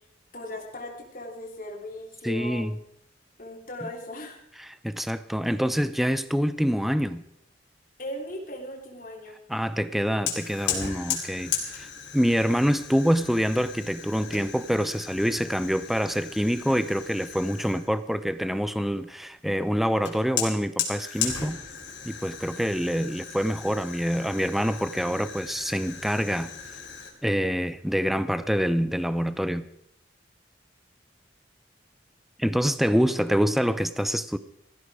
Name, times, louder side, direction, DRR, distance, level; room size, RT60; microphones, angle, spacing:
voice 1, 0.3-2.6 3.4-4.4 8.0-9.4, left 1 dB, 50° left, -1 dB, 3.3 m, -38 dB
voice 2, 2.2-2.7 3.8-3.9 4.6-7.2 9.5-11.9 12.1-21.6 22.0-26.5 27.2-29.7 32.4-34.4, equal, ahead, 13 dB, 0.6 m, -26 dB
Fire, 10.3-17.9 20.0-27.1, left 7 dB, 85° left, 3.6 m, -36 dB
17.5 x 14.5 x 4.9 m, 0.75 s
head